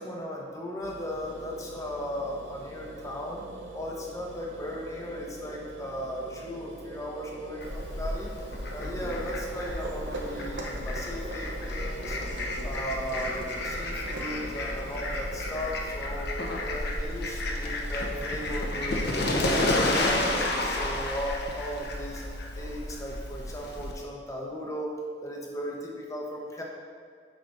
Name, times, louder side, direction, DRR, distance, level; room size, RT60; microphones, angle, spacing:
voice 1, 0.0-3.5 3.7-8.3 8.7-12.2 12.6-16.3 16.6-19.1 19.4-22.2 22.6-24.9 25.2-26.6, equal, 20° left, -2 dB, 1.0 m, -36 dB
sound 1, 0.8-18.2, right 2 dB, 75° right, 0.7 m, -42 dB
Fowl, 7.6-23.9, left 1 dB, 60° left, 0.9 m, -31 dB
8.7 x 5.8 x 2.6 m, 2.1 s
head